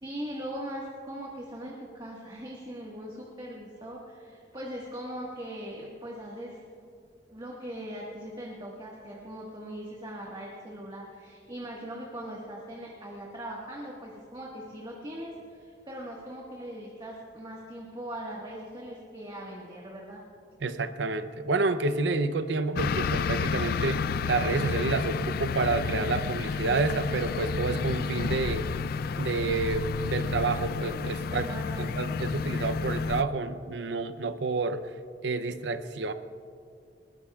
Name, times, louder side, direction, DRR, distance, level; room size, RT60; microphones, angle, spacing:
voice 1, 0.0-6.6 7.3-20.2 31.3-32.1, equal, 25° right, -3 dB, 1.5 m, -40 dB
voice 2, 20.6-28.7 29.2-31.5 31.8-34.8 35.2-36.1, right 3 dB, 80° right, 11 dB, 0.6 m, -29 dB
sound 1, 22.8-33.2, left 5 dB, 55° left, 0.3 m, -31 dB
21.0 x 20.0 x 2.4 m, 2.3 s
head